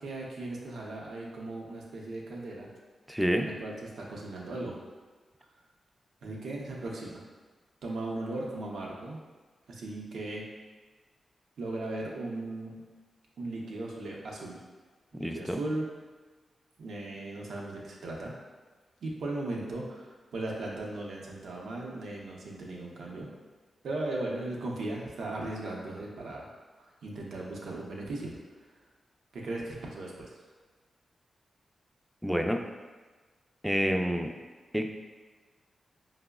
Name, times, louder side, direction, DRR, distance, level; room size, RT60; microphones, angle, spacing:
voice 1, 0.0-2.7 3.4-4.8 6.2-7.2 7.8-9.2 9.7-10.4 11.6-12.8 13.4-14.6 15.1-15.9 16.8-18.3 19.0-23.3 23.8-26.5 26.8-28.4 29.3-30.3, right 2 dB, 85° right, -2 dB, 0.6 m, -37 dB
voice 2, 3.1-3.5 15.1-15.6 32.2-32.6 33.6-34.3 34.7-34.9, equal, 5° right, 4 dB, 0.3 m, -28 dB
5.0 x 2.0 x 2.3 m, 1.3 s
cardioid pair, 60°, 0 cm